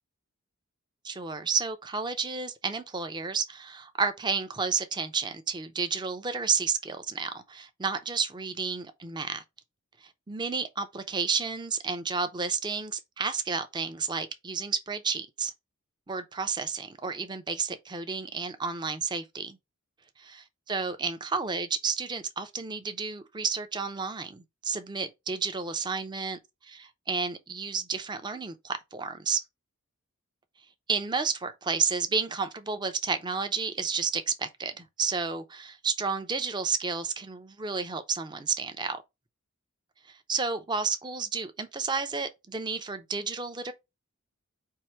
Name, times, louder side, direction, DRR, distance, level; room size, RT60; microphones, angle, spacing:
voice 1, 1.0-9.4 10.0-15.5 16.1-19.6 20.3-20.4 20.7-29.4 30.9-39.0 40.3-43.7, right 5 dB, 20° right, 0.5 m, -31 dB
4.6 x 2.6 x 4.3 m
head